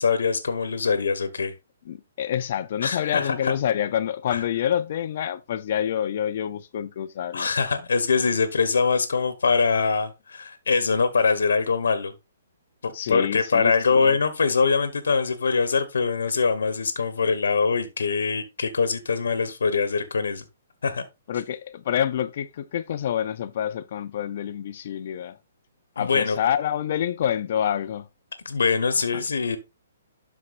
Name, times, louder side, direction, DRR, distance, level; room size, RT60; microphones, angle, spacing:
voice 1, 0.0-1.5 2.8-3.5 4.3-4.4 7.3-12.1 12.8-20.4 20.8-21.0 26.0-26.4 28.4-29.6, left 5 dB, 90° left, 1.3 m, -23 dB
voice 2, 1.9-7.5 12.9-14.2 21.3-25.4 26.0-28.1 29.1-29.3, left 10 dB, 50° left, 0.7 m, -27 dB
12.0 x 4.6 x 2.6 m
hypercardioid pair, 155°, 0 cm